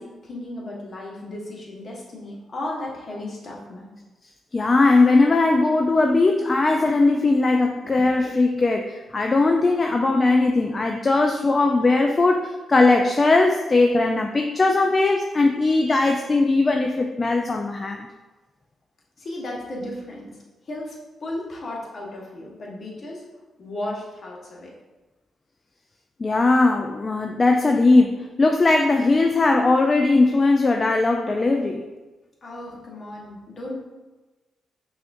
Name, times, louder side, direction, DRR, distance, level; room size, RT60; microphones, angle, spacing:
voice 1, 0.0-4.0 19.2-20.3 20.6-20.9 21.2-23.2 23.6-24.7 32.4-33.8, left 1 dB, 50° left, -3 dB, 1.1 m, -35 dB
voice 2, 4.5-18.1 26.2-31.8, left 3 dB, 35° left, 3 dB, 0.3 m, -19 dB
5.6 x 2.4 x 2.5 m, 1.2 s
cardioid pair, 65°, 0 cm